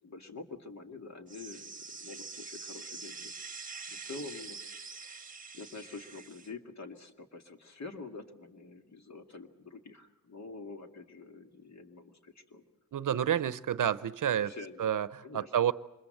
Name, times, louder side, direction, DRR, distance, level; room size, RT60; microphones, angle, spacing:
voice 1, 0.0-3.3 3.9-4.6 4.9-5.2 5.5-12.6 14.4-14.8 15.2-15.7, left 3 dB, 50° left, 2.2 m, -47 dB
sound 1, 1.3-6.5, right 4 dB, 25° right, 1.3 m, -45 dB
voice 2, 12.9-14.5 14.8-15.7, right 9 dB, 65° right, 0.7 m, -29 dB
25.0 x 21.5 x 7.8 m
cardioid pair, 75°, 34 cm